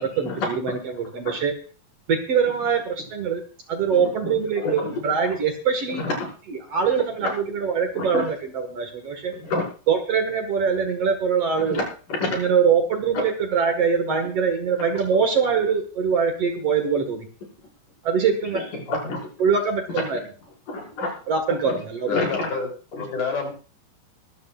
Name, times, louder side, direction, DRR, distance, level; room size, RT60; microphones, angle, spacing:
voice 1, 0.0-1.5 2.1-3.4 3.7-6.0 6.5-9.3 9.9-11.8 12.3-17.2 18.0-18.6 19.4-20.2 21.3-22.3, right 6 dB, 50° right, 5 dB, 2.4 m, -23 dB
voice 2, 3.9-4.3 4.6-4.9 5.9-6.3 7.9-8.3 9.3-9.7 11.6-11.8 12.1-12.4 18.7-19.3 20.7-21.1 21.5-21.7 22.1-22.5 22.9-23.0, left 2 dB, 60° left, -3 dB, 7.3 m, -28 dB
voice 3, 22.1-22.7 23.0-23.5, left 4 dB, 85° left, 2 dB, 5.3 m, -27 dB
24.0 x 12.5 x 2.5 m, 0.38 s
omnidirectional pair, 4.2 m